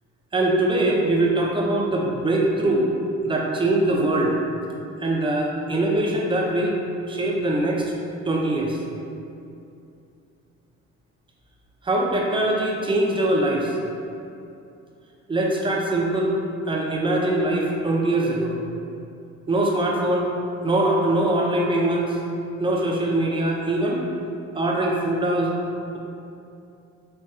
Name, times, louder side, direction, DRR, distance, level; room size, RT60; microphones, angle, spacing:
voice 1, 0.3-2.9 3.2-4.3 5.0-6.8 7.1-7.9 8.3-8.8 11.8-13.7 15.3-16.3 16.7-18.6 19.5-20.3 20.6-22.2 22.6-24.0 24.5-25.5, right 1 dB, 15° right, -2 dB, 0.5 m, -22 dB
4.1 x 2.3 x 2.3 m, 2.6 s
cardioid pair, 90°, 30 cm